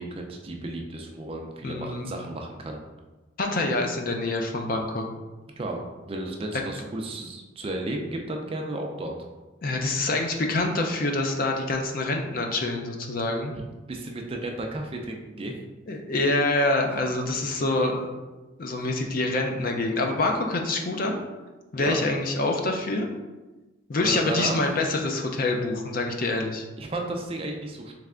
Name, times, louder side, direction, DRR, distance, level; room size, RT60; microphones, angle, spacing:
voice 1, 0.0-2.8 5.6-5.8 6.1-9.1 13.9-15.6 21.8-22.0 24.0-24.6 26.8-27.9, right 2 dB, 30° right, 2 dB, 0.4 m, -33 dB
voice 2, 1.6-2.1 3.4-5.0 9.6-13.5 15.9-18.1 18.6-21.2 21.7-23.1 23.9-26.6, left 2 dB, 45° left, 2 dB, 0.5 m, -26 dB
3.3 x 3.3 x 3.7 m, 1.2 s
head